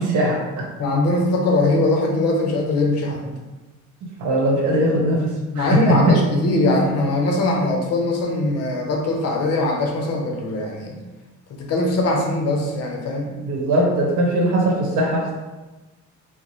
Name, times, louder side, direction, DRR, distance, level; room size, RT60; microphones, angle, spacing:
voice 1, 0.0-0.6 4.2-5.3 5.5-6.2 13.4-15.3, right 1 dB, 80° right, -2 dB, 1.0 m, -19 dB
voice 2, 0.8-3.2 5.5-11.0 11.5-13.3, left 2 dB, 55° left, 1 dB, 0.7 m, -21 dB
4.5 x 2.0 x 2.9 m, 1.1 s
cardioid pair, 170°, 30 cm